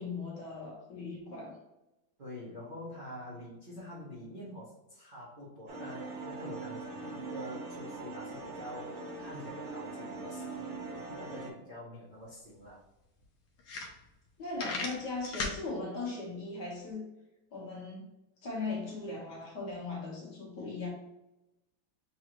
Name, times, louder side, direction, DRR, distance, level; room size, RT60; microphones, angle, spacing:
voice 1, 0.0-1.6 14.4-17.1 17.5-18.1 18.4-20.9, left 3 dB, 55° left, -3 dB, 1.7 m, -38 dB
voice 2, 2.2-12.8, left 1 dB, 45° right, -8 dB, 0.6 m, -46 dB
sound 1, 5.7-11.5, right 3 dB, 70° right, 1.6 m, -41 dB
sound 2, 12.2-12.3 12.6-12.7 13.2-13.3 13.6-14.3 14.6-15.6, left 3 dB, 75° left, 1.5 m, -36 dB
6.9 x 2.5 x 3.0 m, 0.94 s
omnidirectional pair, 2.3 m